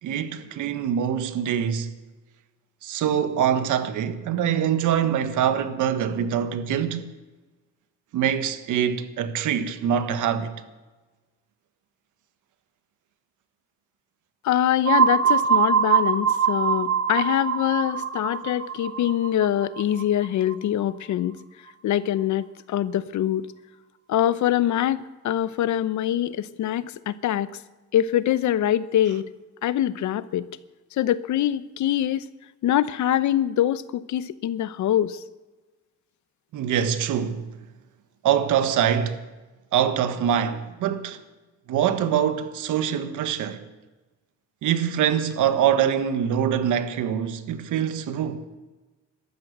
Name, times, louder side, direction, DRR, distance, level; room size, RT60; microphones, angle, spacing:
voice 1, 0.0-1.9 2.8-7.1 8.1-10.5 36.5-37.5 38.2-39.2 39.7-41.2 41.7-43.6 44.6-48.5, right 9 dB, 80° right, 1.4 m, -24 dB
voice 2, 14.4-21.3 21.8-23.5 24.1-27.5 27.9-29.3 29.6-30.5 30.9-32.3 32.6-35.2, left 11 dB, 70° left, 0.8 m, -24 dB
sound 1, 14.8-20.5, right 7 dB, 60° right, 2.0 m, -23 dB
13.0 x 12.5 x 8.0 m
cardioid pair, 90°, 30 cm